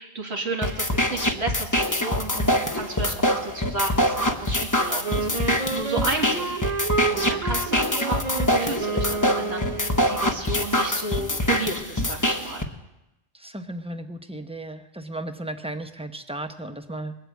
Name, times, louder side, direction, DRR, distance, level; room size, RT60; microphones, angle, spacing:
voice 1, 0.0-6.6 7.1-12.7, right 2 dB, 80° right, 1 dB, 2.4 m, -32 dB
sound 1, 0.6-12.6, left 1 dB, 20° left, 1.0 m, -24 dB
Wind instrument woodwind instrument, 5.0-10.0, right 3 dB, 40° right, 1.1 m, -29 dB
voice 2, 13.3-17.2, right 1 dB, 5° right, 8 dB, 0.7 m, -35 dB
21.0 x 8.1 x 8.3 m, 0.94 s
omnidirectional pair, 1.1 m